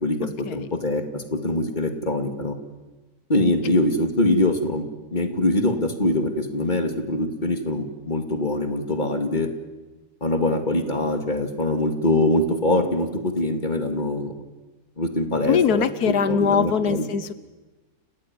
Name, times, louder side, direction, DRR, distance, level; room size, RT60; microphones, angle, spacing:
voice 1, 0.0-2.5 3.3-4.8 5.1-9.5 10.2-14.3 15.0-17.0, left 1 dB, 30° left, 6 dB, 2.5 m, -23 dB
voice 2, 15.4-17.3, left 7 dB, 85° left, 14 dB, 1.6 m, -22 dB
29.5 x 17.5 x 9.8 m, 1.2 s
omnidirectional pair, 1.6 m